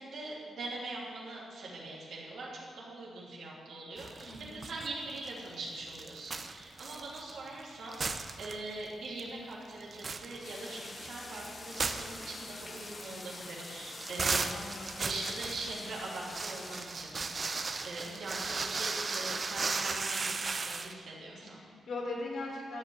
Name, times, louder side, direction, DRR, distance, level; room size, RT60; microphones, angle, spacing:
voice 1, 0.0-14.5 15.0-17.2 17.8-21.6, right 2 dB, 80° right, -5 dB, 3.0 m, -42 dB
sound 1, 4.0-4.9 5.2-7.6 7.9-8.9 9.2-9.3 9.7-20.9, right 4 dB, 40° right, 0.7 m, -36 dB
voice 2, 4.2-4.7 14.5-15.1 18.0-18.1 21.3-22.8, left 2 dB, 70° left, -2 dB, 3.2 m, -40 dB
sound 2, 10.4-16.8, left 3 dB, 35° left, 1.1 m, -46 dB
13.5 x 5.3 x 8.5 m, 2.2 s
cardioid pair, 90°, 0 cm